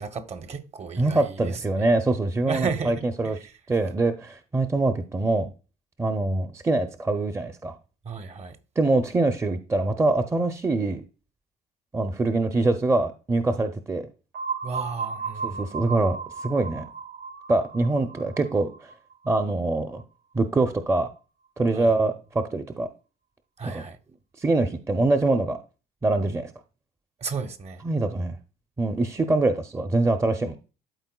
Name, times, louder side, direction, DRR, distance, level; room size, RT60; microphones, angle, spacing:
voice 1, 0.0-1.6 2.5-3.4 8.0-8.6 14.6-15.7 21.7-21.9 23.6-24.0 27.2-27.8, right 5 dB, 40° right, 0.8 m, -33 dB
voice 2, 1.0-3.4 3.7-5.5 6.0-7.7 8.8-11.0 11.9-14.1 15.4-16.8 17.5-18.9 19.3-20.0 20.3-21.1 21.6-22.9 23.6-23.8 24.4-25.6 26.0-26.5 27.8-28.4 28.8-30.6, right 2 dB, 15° right, 0.5 m, -24 dB
sound 1, 14.3-20.0, right 5 dB, 70° right, 0.5 m, -35 dB
12.0 x 4.2 x 2.2 m
cardioid pair, 110°, 17 cm